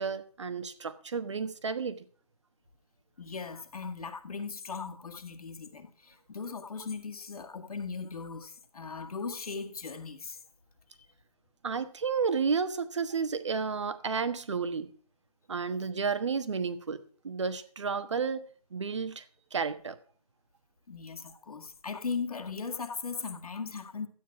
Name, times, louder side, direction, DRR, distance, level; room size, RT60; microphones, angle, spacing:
voice 1, 0.0-2.0 11.6-14.9 15.5-17.0 17.2-18.5 18.7-19.2 19.5-20.0, right 5 dB, 50° right, 1.2 m, -31 dB
voice 2, 3.2-10.4 20.9-24.1, left 5 dB, 65° left, 2.0 m, -38 dB
12.5 x 9.1 x 5.9 m
hypercardioid pair, 175°, 20 cm